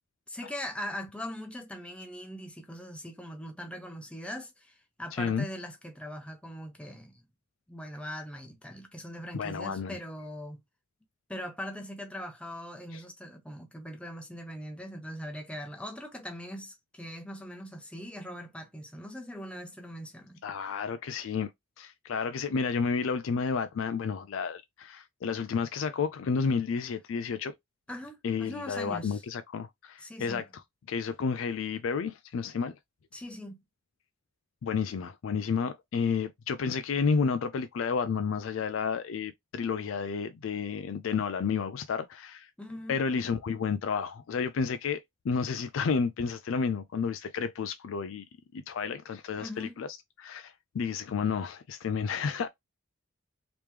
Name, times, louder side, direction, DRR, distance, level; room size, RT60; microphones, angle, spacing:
voice 1, 0.3-7.2 7.7-10.6 11.3-20.4 27.9-29.2 30.0-30.4 33.1-33.6 42.6-43.0 49.4-49.8, equal, 5° left, 0.7 m, -41 dB
voice 2, 5.1-5.5 9.3-10.0 12.9-13.0 20.4-21.5 21.8-27.5 28.2-30.5 30.9-32.7 34.6-42.5 42.9-48.2 48.5-49.9 50.2-52.5, left 5 dB, 75° left, 0.4 m, -31 dB
3.4 x 3.0 x 3.2 m
head